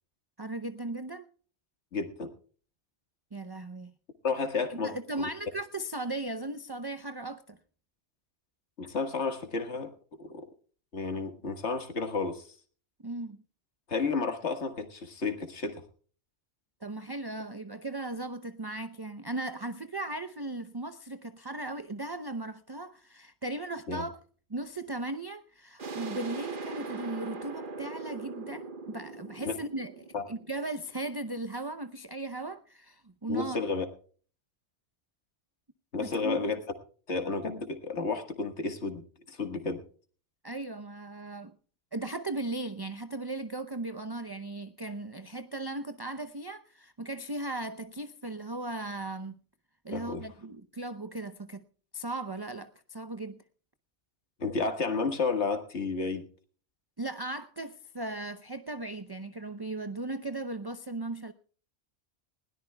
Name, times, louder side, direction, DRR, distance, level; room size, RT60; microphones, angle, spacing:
voice 1, 0.4-1.3 3.3-3.9 4.7-7.6 13.0-13.4 16.8-24.2 24.5-33.6 36.0-36.5 40.4-41.5 41.9-49.4 49.8-51.6 51.9-53.4 57.0-61.3, right 2 dB, 25° right, 0.6 m, -37 dB
voice 2, 1.9-2.3 4.2-5.3 8.8-9.9 10.2-10.4 10.9-12.5 13.9-15.8 23.9-24.0 29.4-29.5 30.1-30.2 33.3-33.9 35.9-36.6 37.1-39.0 39.3-39.8 49.9-50.2 54.4-56.2, left 4 dB, 80° left, 1.9 m, -31 dB
sound 1, 25.8-31.3, right 3 dB, 50° right, 1.4 m, -41 dB
20.5 x 17.5 x 2.2 m
omnidirectional pair, 1.1 m